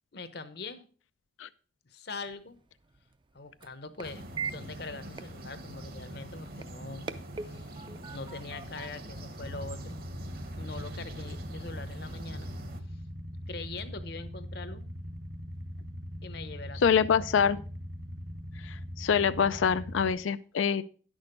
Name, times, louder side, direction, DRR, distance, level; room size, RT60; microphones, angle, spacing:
voice 1, 0.1-0.8 1.9-2.6 3.3-7.1 7.4-7.8 8.1-10.0 10.6-12.5 13.5-14.8 16.2-16.9 17.3-17.7, left 3 dB, 55° left, 11 dB, 0.9 m, -42 dB
sound 1, 2.2-10.1, right 5 dB, 25° right, 0.4 m, -44 dB
sound 2, 4.0-12.8, right 1 dB, 50° right, 1.0 m, -44 dB
Motorcycle / Idling, 9.4-20.1, equal, 70° right, 2.0 m, -41 dB
voice 2, 16.8-17.6 18.6-20.8, left 7 dB, 80° left, 13 dB, 0.4 m, -25 dB
10.5 x 6.3 x 5.1 m, 0.41 s
head